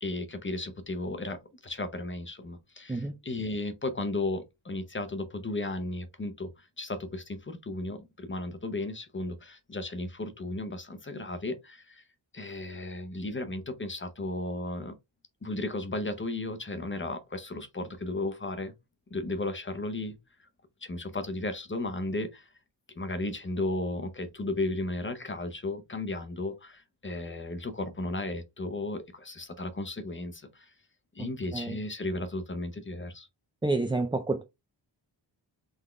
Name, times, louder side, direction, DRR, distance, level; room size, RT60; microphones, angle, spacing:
voice 1, 0.0-12.0 12.3-14.9 15.4-18.7 19.1-20.2 20.8-22.5 23.0-30.7 31.1-33.3, left 2 dB, 25° left, 0.7 m, -34 dB
voice 2, 33.6-34.4, right 2 dB, 10° right, 0.4 m, -29 dB
3.9 x 3.5 x 3.2 m
wide cardioid pair, 140°, 46 cm